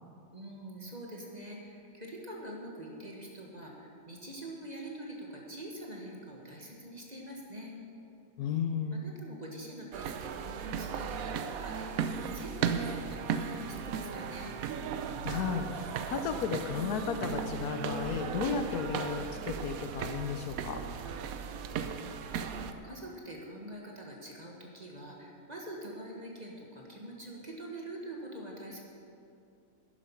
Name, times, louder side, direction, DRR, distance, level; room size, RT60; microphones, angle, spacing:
voice 1, 0.3-7.7 8.9-14.6 22.2-22.5 22.8-28.8, right 1 dB, 25° right, -1 dB, 1.6 m, -45 dB
voice 2, 8.4-9.1 15.2-20.8, left 6 dB, 70° left, 7 dB, 1.2 m, -34 dB
sound 1, 9.9-22.7, right 6 dB, 65° right, 1.0 m, -36 dB
11.5 x 10.0 x 5.7 m, 2.5 s
omnidirectional pair, 1.8 m